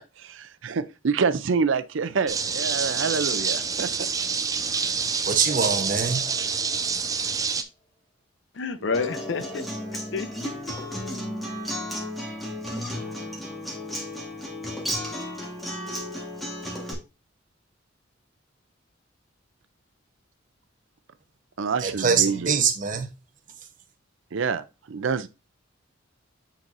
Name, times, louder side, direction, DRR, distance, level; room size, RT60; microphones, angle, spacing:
voice 1, 0.2-3.9 8.9-9.0 21.6-22.5 24.3-25.3, right 5 dB, 70° right, 0.5 m, -27 dB
sound 1, 2.3-7.6, right 5 dB, 15° right, 0.4 m, -27 dB
sound 2, 2.8-4.2 5.5-7.6 8.9-11.1, equal, 20° left, 0.7 m, -43 dB
voice 2, 4.9-6.2 21.8-23.1, right 6 dB, 40° right, 0.9 m, -24 dB
voice 3, 8.5-9.7 9.9-10.5, left 4 dB, 65° left, 0.6 m, -30 dB
Acoustic guitar, 8.9-16.9, equal, ahead, 1.4 m, -33 dB
9.0 x 4.0 x 2.6 m
head